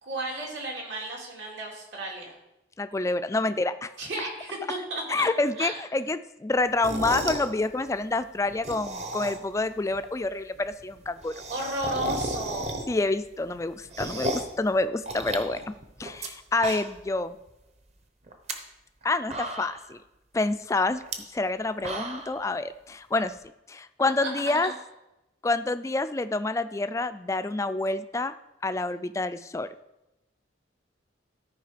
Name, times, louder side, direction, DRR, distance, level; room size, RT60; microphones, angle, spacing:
voice 1, 0.0-2.3 4.0-5.3 5.6-5.7 11.5-12.8 24.0-24.7, right 1 dB, 75° right, -1 dB, 2.6 m, -34 dB
voice 2, 2.8-3.9 5.1-11.3 12.9-15.7 16.0-17.4 19.0-20.0 20.3-21.0 21.3-23.3 23.7-24.7 25.4-28.3 28.6-29.7, left 2 dB, 15° left, 11 dB, 0.3 m, -27 dB
sound 1, 6.7-7.5 8.5-9.6 9.9-10.0 10.2-10.3 10.6-10.7 10.9-13.1 13.5-14.6 15.1-16.3 16.5-17.1 17.5-17.6 18.3-18.5 19.0-19.1 19.3-19.9 21.0-21.2 21.6-22.4, right 1 dB, 35° right, 0.9 m, -33 dB
13.5 x 4.7 x 5.0 m, 0.94 s
head